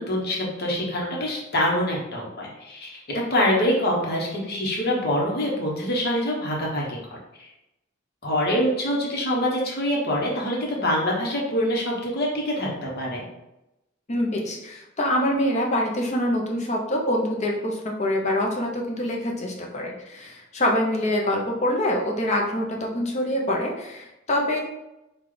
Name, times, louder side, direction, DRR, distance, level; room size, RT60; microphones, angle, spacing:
voice 1, 0.0-7.5 8.2-13.2, equal, 50° left, -2 dB, 1.1 m, -25 dB
voice 2, 14.1-24.6, left 1 dB, 35° left, -1 dB, 0.8 m, -25 dB
4.9 x 2.4 x 3.8 m, 0.92 s
head